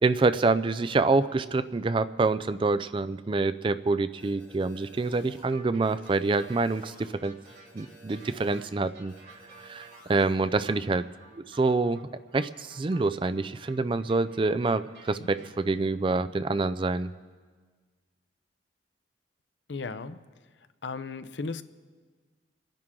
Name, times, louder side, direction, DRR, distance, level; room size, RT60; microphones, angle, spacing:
voice 1, 0.0-7.3 7.7-9.1 9.6-11.0 11.3-17.1, right 3 dB, 30° right, 14 dB, 0.4 m, -26 dB
sound 1, 4.2-5.4 5.8-7.1 7.4-8.7 9.1-10.3, right 1 dB, 5° left, 6.1 m, -53 dB
sound 2, 5.5-15.8, right 3 dB, 85° right, 4.3 m, -54 dB
voice 2, 19.7-20.2 20.8-21.6, left 4 dB, 80° left, 11 dB, 0.6 m, -36 dB
28.5 x 10.5 x 3.7 m, 1.5 s
head